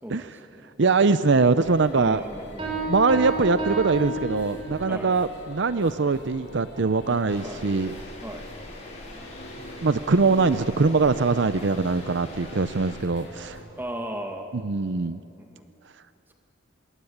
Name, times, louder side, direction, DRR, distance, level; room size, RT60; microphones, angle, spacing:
voice 1, 0.0-0.7 1.9-2.9 4.9-5.1 7.4-7.6 8.2-8.5 13.7-14.5 15.4-15.7, right 1 dB, 10° right, 3 dB, 2.2 m, -37 dB
voice 2, 0.8-2.2 2.9-7.9 9.8-13.6 14.5-15.2, right 4 dB, 60° right, 13 dB, 0.6 m, -22 dB
sound 1, 1.6-13.6, left 1 dB, 55° left, 4.2 m, -44 dB
Piano, 2.6-5.0, right 2 dB, 25° right, 6.7 m, -30 dB
sound 2, 7.3-13.0, left 1 dB, 35° left, 5.6 m, -43 dB
26.0 x 22.0 x 8.7 m, 2.6 s
head